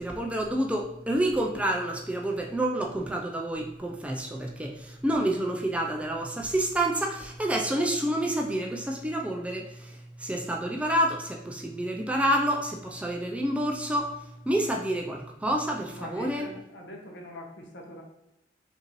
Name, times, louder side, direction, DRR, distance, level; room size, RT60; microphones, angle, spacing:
voice 1, 0.0-9.9 10.2-14.1 14.5-16.5, right 1 dB, 5° right, 1 dB, 0.4 m, -28 dB
voice 2, 16.0-18.0, equal, 75° left, 1 dB, 0.9 m, -42 dB
5.3 x 2.7 x 2.9 m, 0.89 s
head